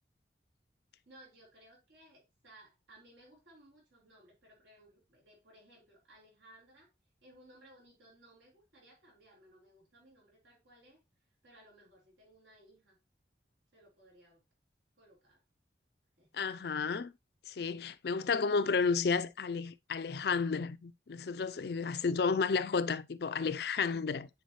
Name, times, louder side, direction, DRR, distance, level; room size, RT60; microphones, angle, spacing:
voice 1, 1.1-6.9 7.2-11.0 11.4-13.0 13.7-14.4 15.0-15.4 16.2-16.5 21.9-22.2, right 1 dB, 80° right, 3.8 m, -60 dB
voice 2, 16.3-17.1 17.5-24.3, left 5 dB, 60° left, 0.4 m, -32 dB
9.3 x 5.0 x 3.1 m
head